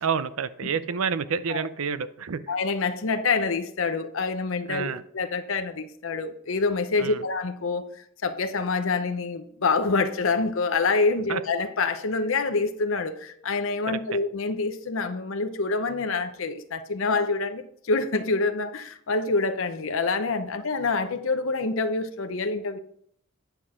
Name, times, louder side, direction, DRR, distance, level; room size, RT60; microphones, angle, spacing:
voice 1, 0.0-2.4 4.7-5.0 7.0-7.2 11.3-11.4 13.9-14.2, right 6 dB, 85° right, 14 dB, 0.6 m, -29 dB
voice 2, 2.5-22.8, left 3 dB, 75° left, 8 dB, 0.7 m, -26 dB
9.9 x 5.8 x 4.9 m, 0.66 s
head